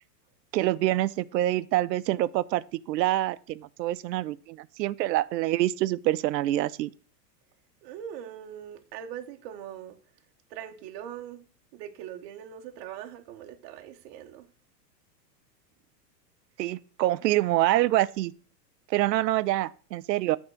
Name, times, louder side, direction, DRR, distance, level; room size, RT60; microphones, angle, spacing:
voice 1, 0.5-6.9 16.6-18.3 18.9-20.4, right 15 dB, 75° right, 0.6 m, -26 dB
voice 2, 7.8-10.0 10.5-11.4 11.7-14.4, right 10 dB, 40° right, 0.8 m, -41 dB
8.6 x 3.6 x 6.3 m
supercardioid pair, 145°, 50 cm